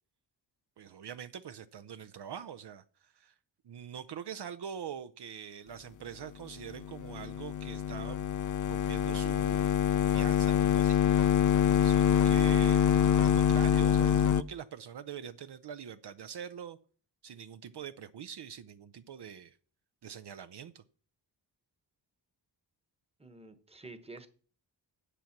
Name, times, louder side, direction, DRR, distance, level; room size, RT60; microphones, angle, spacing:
voice 1, 0.8-3.3 3.6-8.3 8.7-11.3 11.8-16.8 17.2-19.6 20.0-20.8, right 8 dB, 65° right, 0.6 m, -44 dB
sound 1, 6.7-14.4, left 9 dB, 45° left, 0.4 m, -25 dB
voice 2, 23.2-24.3, right 2 dB, 15° right, 1.0 m, -49 dB
10.0 x 7.6 x 5.9 m
wide cardioid pair, 120°, 43 cm